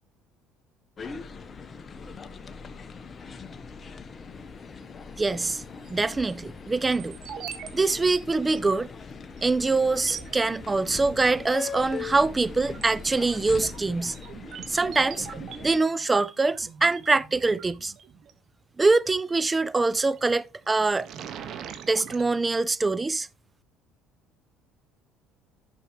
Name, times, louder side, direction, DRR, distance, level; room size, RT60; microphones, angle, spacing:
sound 1, 1.0-15.8, left 5 dB, 35° left, 1.1 m, -41 dB
voice 1, 5.2-5.6 5.9-7.2 7.7-8.9 9.4-14.2 14.7-15.3 15.6-17.9 18.8-21.1 21.9-23.3, right 3 dB, 20° right, 0.5 m, -24 dB
sound 2, 5.9-6.3 6.9-7.7 8.0-8.1 8.5-8.7 9.4-9.5 9.9-10.4 11.6-12.0 12.4-18.3 19.9-20.3 20.7-22.2, right 8 dB, 60° right, 1.5 m, -42 dB
11.0 x 6.8 x 3.2 m
supercardioid pair, 75°, 0 cm